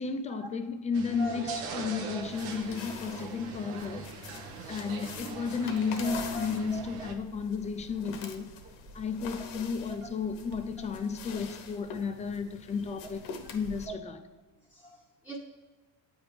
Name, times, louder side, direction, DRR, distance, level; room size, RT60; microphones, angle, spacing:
voice 1, 0.0-4.2 4.7-8.5 8.9-13.2 13.5-14.2, left 5 dB, 20° left, 0.3 m, -33 dB
sound 1, 0.9-7.1, right 5 dB, 90° right, 0.9 m, -42 dB
voice 2, 1.2-1.6 2.2-2.3 5.9-6.9 9.5-9.6 9.9-10.0 10.8-10.9 13.9-14.0 14.7-15.4, right 3 dB, 5° right, 0.7 m, -40 dB
sound 2, 2.2-13.9, left 6 dB, 90° left, 1.0 m, -46 dB
Bark, 6.0-14.0, right 2 dB, 60° right, 1.0 m, -52 dB
8.6 x 3.5 x 4.7 m
cardioid pair, 125°, 44 cm